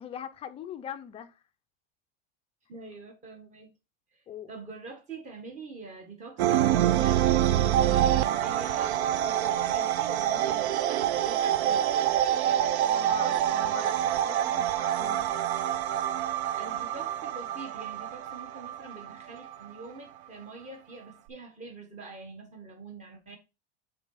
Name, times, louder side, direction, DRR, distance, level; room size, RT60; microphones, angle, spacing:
voice 1, 0.0-1.3 4.3-4.5 12.4-15.3, left 9 dB, 20° left, 0.4 m, -42 dB
voice 2, 2.7-3.7 4.1-4.2 4.5-11.8 16.6-23.4, right 3 dB, 20° right, 1.6 m, -45 dB
sound 1, 6.4-19.8, right 11 dB, 85° right, 0.6 m, -26 dB
7.0 x 4.0 x 4.1 m
supercardioid pair, 160°, 32 cm